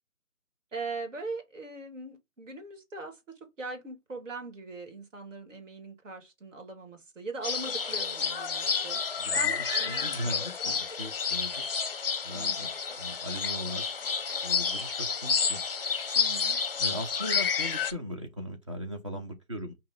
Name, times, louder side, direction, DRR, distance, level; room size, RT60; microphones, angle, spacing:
voice 1, 0.7-9.0 9.4-10.8 12.3-12.7 16.2-16.6, right 3 dB, 60° right, 2.1 m, -40 dB
sound 1, 7.4-17.9, left 6 dB, 40° left, 0.6 m, -30 dB
voice 2, 9.2-9.5 9.9-11.6 12.2-13.8 14.4-15.6 16.8-19.8, equal, 20° right, 0.6 m, -38 dB
5.1 x 2.8 x 3.5 m
hypercardioid pair, 160°, 42 cm